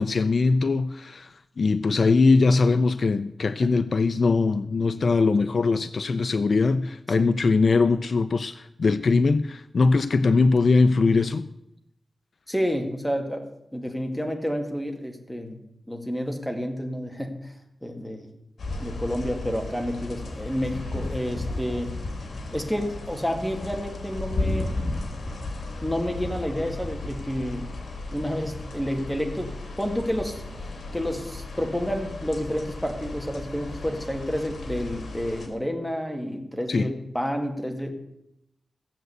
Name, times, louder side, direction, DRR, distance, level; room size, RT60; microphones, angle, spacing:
voice 1, 0.0-11.5 36.7-36.9, left 4 dB, 60° left, 0.5 m, -21 dB
voice 2, 12.5-13.5 13.7-15.6 15.9-17.5 17.8-18.3 18.8-21.9 22.5-24.8 25.8-27.7 28.1-30.4 30.9-37.9, equal, 5° left, 2.2 m, -29 dB
sound 1, 18.6-35.5, left 2 dB, 75° left, 2.8 m, -34 dB
15.5 x 7.9 x 8.0 m
wide cardioid pair, 125°, 0 cm